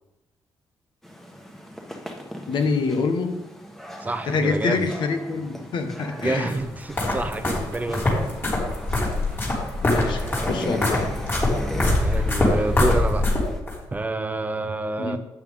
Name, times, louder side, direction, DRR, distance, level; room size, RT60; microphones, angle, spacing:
sound 1, 1.0-13.6, equal, 5° left, 1.4 m, -38 dB
voice 1, 2.5-3.3 4.3-6.5 9.8-11.1 15.0-15.2, left 4 dB, 65° left, 6 dB, 1.4 m, -26 dB
voice 2, 4.0-4.9 6.2-8.2 12.0-13.3 13.9-15.2, right 2 dB, 20° right, 10 dB, 0.6 m, -28 dB
sound 2, 6.5-13.8, left 2 dB, 25° left, 3.4 m, -24 dB
11.5 x 8.7 x 3.6 m, 0.97 s
cardioid pair, 125°, 9 cm